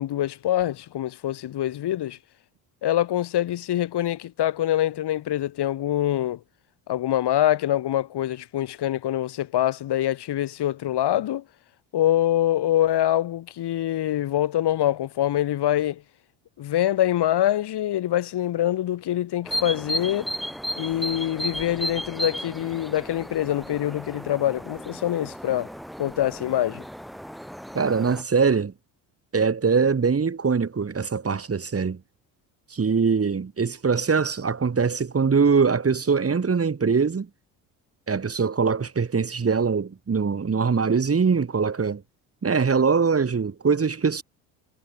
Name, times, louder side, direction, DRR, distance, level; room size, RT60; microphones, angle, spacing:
voice 1, 0.0-2.2 2.8-6.4 6.9-11.4 11.9-16.0 16.6-20.3 20.8-25.7 26.0-26.8, left 12 dB, 60° left, 6.6 m, -24 dB
sound 1, 19.5-28.2, equal, ahead, 7.0 m, -34 dB
voice 2, 27.7-28.7 29.3-32.0 32.7-37.3 38.1-42.0 42.4-44.2, right 5 dB, 30° right, 5.4 m, -22 dB
supercardioid pair, 75°, 44 cm